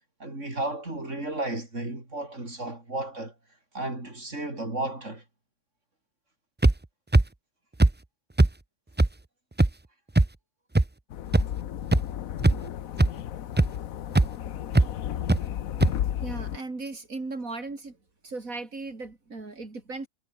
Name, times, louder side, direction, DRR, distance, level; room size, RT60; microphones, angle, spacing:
voice 1, 0.2-3.3 3.7-5.2, right 2 dB, 60° right, 6.7 m, -33 dB
sound 1, 6.6-6.7 7.1-7.2 7.8-7.9 8.4-8.5 9.0-9.1 9.6-9.7 10.2-10.3 10.8-10.9 11.3-11.4 11.9-12.0 12.4-12.7 13.0-13.1 13.6-13.7 14.2-14.3 14.7-14.9 15.3-15.4 15.8-15.9, right 2 dB, 15° right, 0.4 m, -18 dB
sound 2, 11.1-16.6, left 11 dB, 80° left, 1.3 m, -33 dB
voice 2, 16.2-18.0 18.2-20.1, right 3 dB, 85° right, 4.3 m, -37 dB
omnidirectional pair, 1.4 m